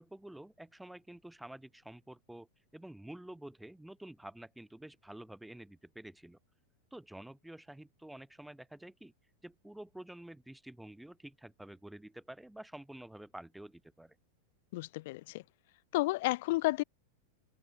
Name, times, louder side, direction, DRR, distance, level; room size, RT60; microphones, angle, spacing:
voice 1, 0.0-2.5 2.7-6.4 6.9-9.1 9.4-14.1, right 1 dB, 5° right, 3.0 m, -49 dB
voice 2, 14.7-15.4 15.9-16.8, left 20 dB, 50° left, 0.7 m, -31 dB
figure-of-eight pair, 90°, 0 cm